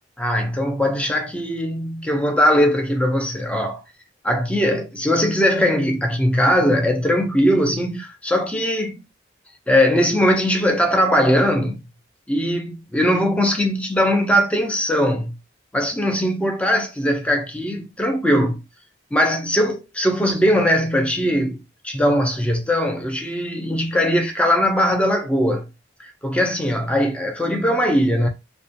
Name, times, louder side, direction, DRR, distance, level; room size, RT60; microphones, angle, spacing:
voice 1, 0.2-3.8 4.2-9.0 9.7-11.8 12.3-15.4 15.7-18.6 19.1-25.7 26.0-28.3, equal, 5° left, 0.4 m, -20 dB
2.3 x 2.1 x 2.7 m
head